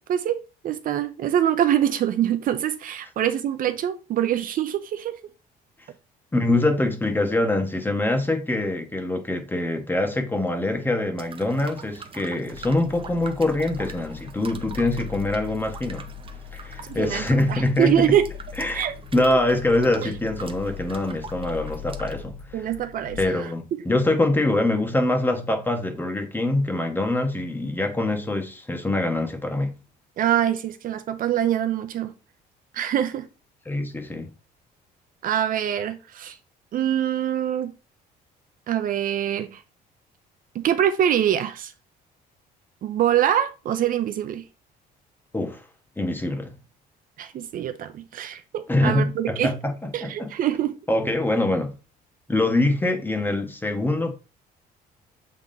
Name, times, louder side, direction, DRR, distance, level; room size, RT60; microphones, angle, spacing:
voice 1, 0.1-5.2 16.8-18.3 18.7-19.0 19.3-19.4 20.0-20.1 22.5-23.5 30.2-32.1 32.7-33.3 35.2-36.4 36.7-37.7 38.7-39.6 40.5-41.7 42.8-44.4 47.2-49.5 49.9-50.8, right 10 dB, 55° right, 0.6 m, -24 dB
voice 2, 6.3-16.0 16.5-18.2 18.6-18.8 19.1-22.6 23.2-29.7 33.6-34.3 45.3-45.6 46.0-46.5 48.7-50.3 50.9-51.7 52.3-54.1, left 2 dB, 10° left, 1.4 m, -24 dB
sound 1, 11.2-22.1, right 5 dB, 30° right, 0.9 m, -43 dB
sound 2, 12.5-23.3, left 11 dB, 85° left, 3.2 m, -40 dB
7.6 x 3.5 x 4.0 m
cardioid pair, 110°, 17 cm